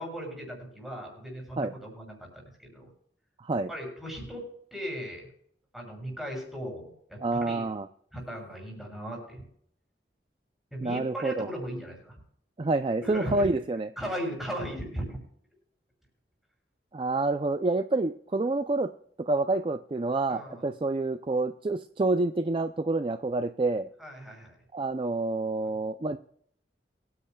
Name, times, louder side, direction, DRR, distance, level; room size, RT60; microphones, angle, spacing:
voice 1, 0.0-2.9 3.7-4.5 4.7-5.3 5.7-7.7 8.1-9.4 10.7-12.2 13.0-13.5 14.0-15.0 20.3-20.6 24.0-24.5, equal, ahead, 0 dB, 6.4 m, -37 dB
voice 2, 7.2-7.9 10.8-11.5 12.6-13.9 16.9-18.9 19.3-23.9 24.7-26.2, right 2 dB, 30° right, 9 dB, 0.4 m, -28 dB
24.0 x 10.0 x 2.3 m, 0.64 s
head